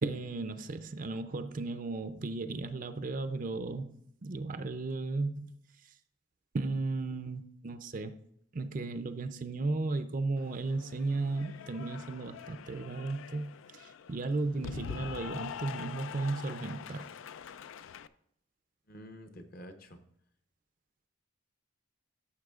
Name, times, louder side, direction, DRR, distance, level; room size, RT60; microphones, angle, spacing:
voice 1, 0.0-5.5 6.5-8.1 8.5-17.1, right 3 dB, 40° right, 9 dB, 0.5 m, -35 dB
Cheering / Applause, 10.4-18.1, left 7 dB, 75° left, 0.3 m, -45 dB
voice 2, 14.5-15.1 18.9-20.0, equal, 45° left, 7 dB, 0.9 m, -49 dB
14.0 x 6.9 x 2.4 m, 0.73 s
head